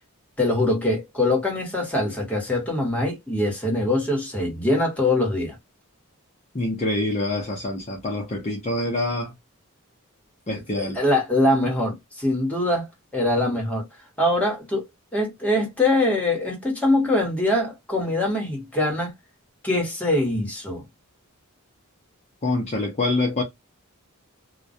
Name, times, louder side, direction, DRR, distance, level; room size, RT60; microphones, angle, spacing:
voice 1, 0.4-5.6 10.5-12.9 13.1-13.9 14.2-14.8 15.1-19.1 19.6-20.8, left 1 dB, 5° left, 1.0 m, -23 dB
voice 2, 6.5-9.3 10.5-11.0 22.4-23.4, left 2 dB, 30° left, 0.6 m, -25 dB
2.2 x 2.2 x 2.5 m
head